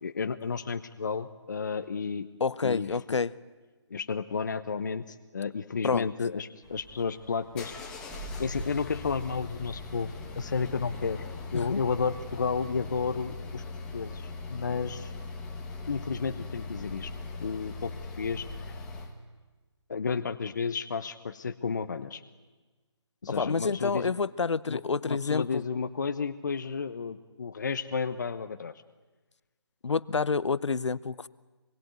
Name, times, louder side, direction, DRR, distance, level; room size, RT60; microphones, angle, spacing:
voice 1, 0.0-2.3 2.6-2.9 3.9-7.7 8.4-11.2 11.5-13.6 13.9-15.1 15.9-17.1 17.4-18.7 19.9-22.2 23.2-24.1 24.7-28.7, left 5 dB, 40° left, 9 dB, 0.9 m, -32 dB
voice 2, 2.4-3.3 5.8-6.1 11.5-11.8 23.4-25.4 29.8-31.3, left 5 dB, 80° left, 18 dB, 0.8 m, -28 dB
sound 1, 6.6-19.2, left 3 dB, 5° left, 1.1 m, -40 dB
26.5 x 21.5 x 9.5 m, 1.3 s
hypercardioid pair, 170°, 15 cm